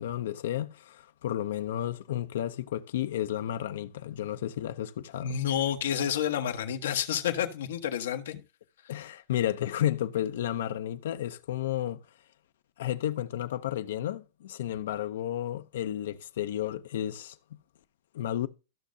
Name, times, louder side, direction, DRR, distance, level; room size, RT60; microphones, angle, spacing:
voice 1, 0.0-5.4 8.9-12.0 12.8-17.4 18.1-18.5, left 11 dB, 70° left, 0.6 m, -32 dB
voice 2, 5.2-8.3, left 9 dB, 90° left, 1.2 m, -29 dB
14.0 x 6.4 x 2.7 m
supercardioid pair, 170°, 0 cm